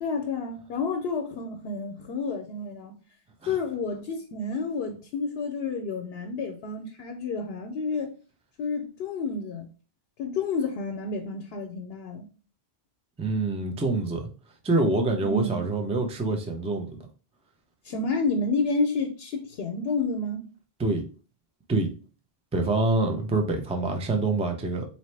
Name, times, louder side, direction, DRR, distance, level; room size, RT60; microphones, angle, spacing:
voice 1, 0.0-2.9 3.5-8.1 8.6-9.7 10.2-12.3 15.2-15.6 17.8-20.5, left 4 dB, 75° left, 0.8 m, -30 dB
voice 2, 13.2-14.3 14.6-17.0 20.8-21.0 21.7-21.9 22.5-24.9, right 2 dB, 10° right, 0.3 m, -26 dB
4.1 x 2.9 x 3.2 m
omnidirectional pair, 1.1 m